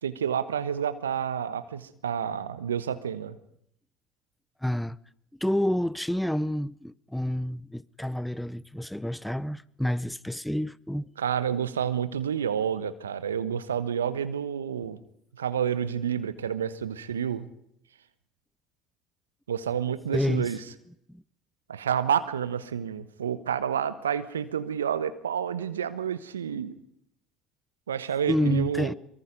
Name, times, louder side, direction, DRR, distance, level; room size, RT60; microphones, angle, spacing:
voice 1, 0.0-3.4 11.2-15.0 15.4-17.5 19.5-20.6 21.7-26.8 27.9-28.9, right 8 dB, 85° right, 1.1 m, -29 dB
voice 2, 4.6-5.0 5.4-11.1 20.1-20.5 21.1-21.2 28.3-28.9, left 1 dB, 5° left, 0.7 m, -28 dB
23.5 x 23.0 x 5.2 m
hypercardioid pair, 65°, 0 cm